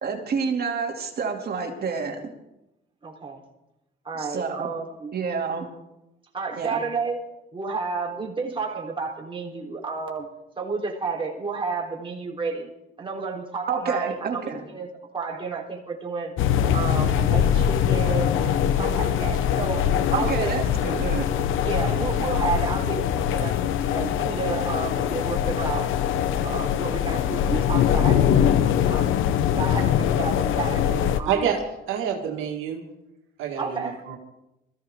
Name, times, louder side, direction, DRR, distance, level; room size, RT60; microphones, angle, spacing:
voice 1, 0.0-2.2 4.2-4.7 5.1-5.7 6.5-6.8 13.7-14.6 20.1-21.3, right 5 dB, 50° right, 1 dB, 2.5 m, -28 dB
voice 2, 3.0-3.4 4.0-5.1 6.3-7.3 7.5-10.3 10.6-12.7 13.0-14.9 15.1-16.3 16.7-20.6 21.6-23.6 23.9-25.9 26.4-29.1 29.6-31.5 33.6-34.0, right 4 dB, 25° right, -2 dB, 3.6 m, -31 dB
sound 1, 16.4-31.2, left 9 dB, 85° left, 0.8 m, -22 dB
voice 3, 31.3-31.6 31.9-32.8 33.4-34.2, right 8 dB, 90° right, 1 dB, 1.8 m, -27 dB
21.0 x 14.5 x 3.6 m, 0.91 s
cardioid pair, 90°, 20 cm